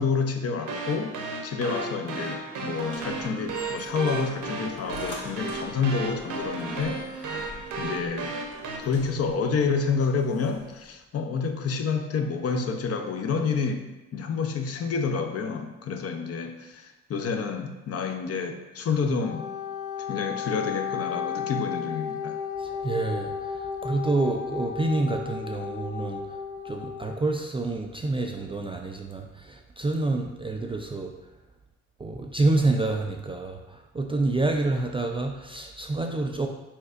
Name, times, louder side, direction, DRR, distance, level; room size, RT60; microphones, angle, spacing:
voice 1, 0.0-7.4 7.8-8.3 8.8-19.5 20.1-22.4, left 5 dB, 45° left, 5 dB, 0.6 m, -29 dB
sound 1, 0.6-8.8, right 3 dB, 60° right, 0.8 m, -34 dB
sound 2, 2.8-10.9, left 2 dB, 60° left, 1.4 m, -47 dB
Wind instrument woodwind instrument, 19.1-27.2, left 7 dB, 10° left, 0.8 m, -34 dB
voice 2, 22.6-26.2 26.6-31.1 32.0-36.5, right 2 dB, 15° right, 2 dB, 0.3 m, -28 dB
4.3 x 4.1 x 2.5 m, 1.0 s
hypercardioid pair, 55°, 35 cm